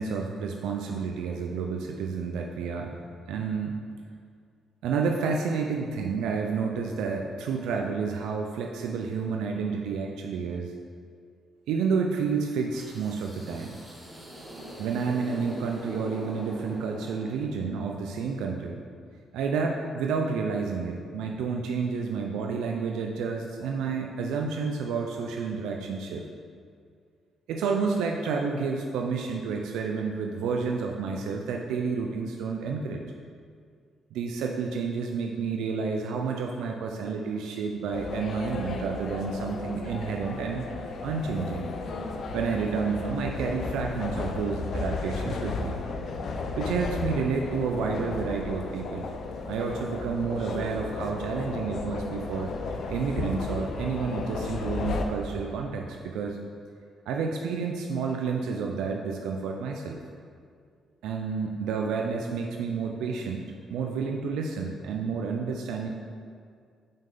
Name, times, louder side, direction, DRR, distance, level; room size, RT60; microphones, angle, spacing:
voice 1, 0.0-3.0 3.3-3.8 4.8-10.7 11.7-13.8 14.8-18.8 19.3-26.2 27.5-33.0 34.1-40.7 41.0-41.7 42.3-45.8 46.6-49.1 49.5-56.4 57.1-60.0 61.0-65.9, right 5 dB, 85° right, 1 dB, 0.4 m, -30 dB
sound 1, 12.7-17.8, equal, 5° right, 1.3 m, -42 dB
sound 2, 37.9-55.0, left 3 dB, 60° left, 0.5 m, -34 dB
sound 3, 50.4-55.5, right 2 dB, 35° right, 1.3 m, -46 dB
5.5 x 5.3 x 3.8 m, 2.2 s
cardioid pair, 90°, 0 cm